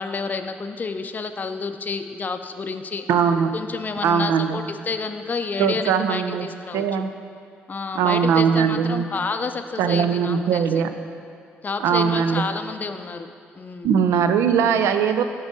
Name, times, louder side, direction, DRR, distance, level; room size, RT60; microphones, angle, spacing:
voice 1, 0.0-3.0 3.5-6.8 7.7-10.6 11.6-13.3 13.6-13.9, left 4 dB, 35° left, 8 dB, 0.4 m, -29 dB
voice 2, 3.1-3.5 4.0-4.6 5.6-6.5 6.7-7.1 7.9-9.1 9.8-10.9 11.8-12.4 13.8-15.2, right 7 dB, 80° right, 9 dB, 0.4 m, -20 dB
7.0 x 5.3 x 3.9 m, 2.5 s
supercardioid pair, 65°, 5 cm